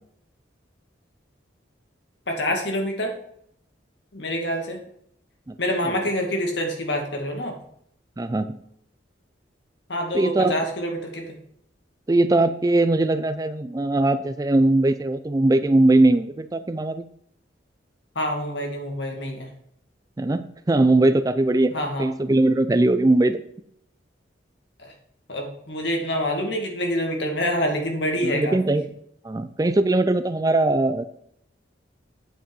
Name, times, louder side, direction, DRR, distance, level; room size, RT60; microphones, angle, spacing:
voice 1, 2.3-3.1 4.1-4.8 5.6-7.5 9.9-11.4 18.2-19.5 21.7-22.1 24.8-24.9 25.3-28.6, equal, 70° left, 2 dB, 2.2 m, -26 dB
voice 2, 8.2-8.6 10.1-10.6 12.1-17.1 20.2-23.4 28.2-28.9 29.2-31.0, right 2 dB, 20° right, 11 dB, 0.4 m, -20 dB
8.9 x 5.6 x 5.5 m, 0.70 s
head